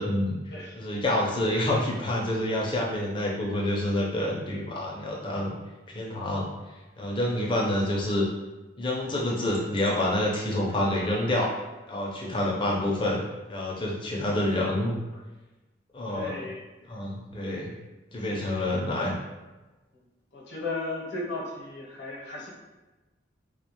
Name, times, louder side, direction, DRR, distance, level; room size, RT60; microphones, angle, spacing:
voice 1, 0.0-0.4 0.8-5.5 5.9-6.5 7.0-8.3 8.8-11.6 11.9-13.2 13.5-14.9 15.9-16.5 16.9-17.7 18.1-19.2, left 1 dB, 25° left, -3 dB, 0.4 m, -27 dB
voice 2, 16.1-16.6 18.2-18.5 20.3-22.5, left 2 dB, 65° left, -4 dB, 0.7 m, -35 dB
2.3 x 2.1 x 2.9 m, 1.1 s
head